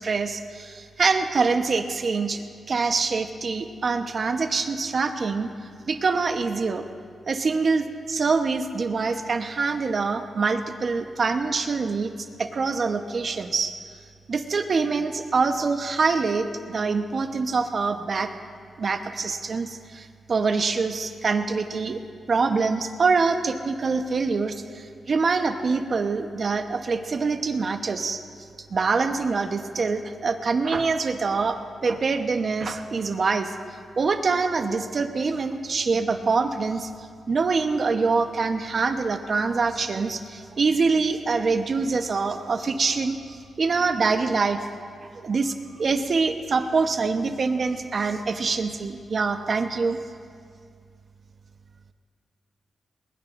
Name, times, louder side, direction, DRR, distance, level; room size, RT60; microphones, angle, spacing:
voice 1, 0.0-5.5 5.9-6.8 7.3-12.1 12.4-13.7 14.3-18.3 18.8-22.0 22.3-28.2 28.7-33.5 34.0-36.9 37.3-43.2 43.6-44.6 45.0-50.0, right 4 dB, 55° right, 7 dB, 1.0 m, -25 dB
20.5 x 20.5 x 2.6 m, 2.2 s
cardioid pair, 75°, 0 cm